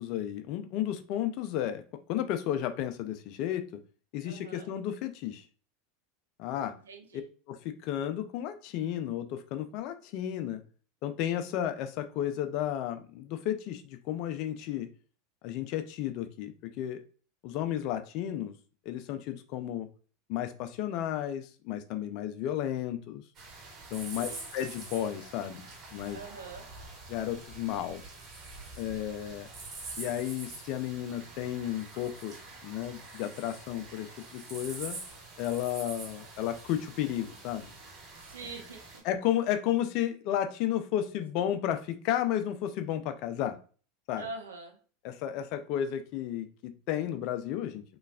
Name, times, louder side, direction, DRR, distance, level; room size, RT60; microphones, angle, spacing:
voice 1, 0.0-1.8 2.1-3.7 4.1-5.4 6.4-6.8 7.5-10.6 11.0-14.9 15.4-17.0 17.4-18.5 18.9-19.9 20.3-23.2 23.9-25.6 25.9-26.2 27.1-28.0 28.8-29.5 30.0-32.3 32.6-35.0 35.4-37.7 39.0-43.6 44.1-44.3 45.0-47.8, left 11 dB, 55° left, 9 dB, 0.5 m, -33 dB
voice 2, 4.2-4.7 6.7-7.2 24.1-24.5 26.1-26.6 38.2-39.0 44.1-44.8, right 3 dB, 85° right, 2 dB, 0.9 m, -44 dB
sound 1, 23.3-39.0, right 3 dB, 40° right, 2.0 m, -46 dB
3.9 x 3.2 x 2.4 m, 0.39 s
hypercardioid pair, 90°, 0 cm